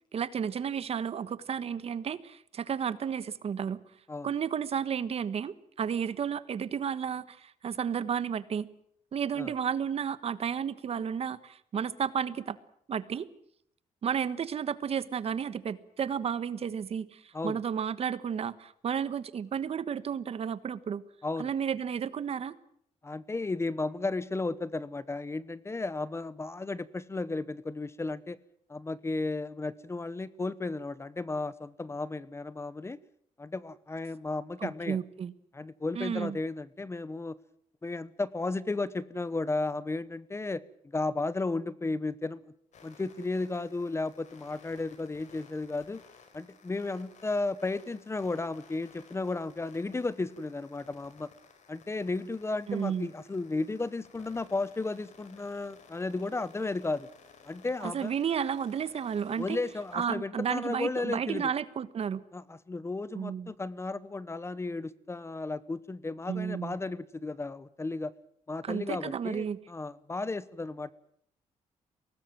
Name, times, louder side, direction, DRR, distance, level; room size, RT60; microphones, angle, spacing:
voice 1, 0.1-3.8 4.2-8.7 9.1-12.6 12.9-13.3 14.0-21.0 21.4-22.5 34.6-35.3 35.9-36.4 52.7-53.1 57.8-59.6 59.9-62.2 63.1-63.5 66.3-66.8 68.6-69.6, right 7 dB, 50° right, 15 dB, 1.3 m, -32 dB
voice 2, 23.0-28.4 28.7-33.0 33.4-35.0 35.5-37.4 37.8-40.6 40.9-42.4 42.8-46.0 46.3-51.3 51.7-57.1 57.5-58.1 59.4-61.5 62.3-68.1 68.5-70.9, left 3 dB, 20° left, 18 dB, 0.9 m, -34 dB
sound 1, 42.7-60.0, left 5 dB, 65° left, 4.8 m, -57 dB
23.0 x 18.5 x 9.1 m, 0.69 s
cardioid pair, 110°, 13 cm